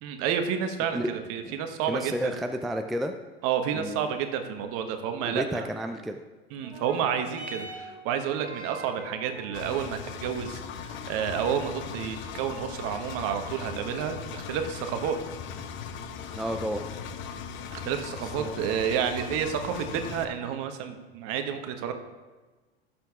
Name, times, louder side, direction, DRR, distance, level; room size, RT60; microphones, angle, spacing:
voice 1, 0.0-2.3 3.4-5.7 6.5-15.2 17.7-21.9, right 8 dB, 50° right, 7 dB, 1.1 m, -30 dB
voice 2, 1.9-3.1 3.7-4.1 5.2-6.2 16.3-16.9 18.4-18.6, equal, ahead, 6 dB, 0.4 m, -31 dB
sound 1, 6.6-15.5 16.4-16.5, right 2 dB, 90° right, 1.4 m, -47 dB
Engine, 9.5-20.3, left 7 dB, 40° left, 0.8 m, -39 dB
17.0 x 7.1 x 2.4 m, 1.3 s
figure-of-eight pair, 75°, 31 cm